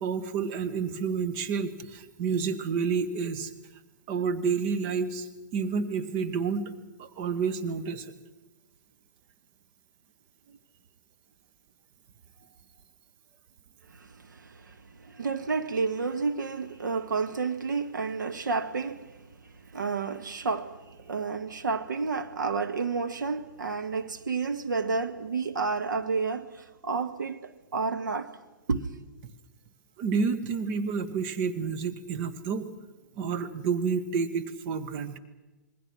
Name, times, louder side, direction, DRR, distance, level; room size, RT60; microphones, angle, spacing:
voice 1, 0.0-3.5 4.1-6.7 7.0-8.1 30.0-32.7 33.2-35.2, right 5 dB, 40° right, 1.7 m, -29 dB
voice 2, 13.9-28.3 28.7-28.9, right 4 dB, 75° right, 1.7 m, -31 dB
26.5 x 22.0 x 6.3 m
figure-of-eight pair, 115°, 10 cm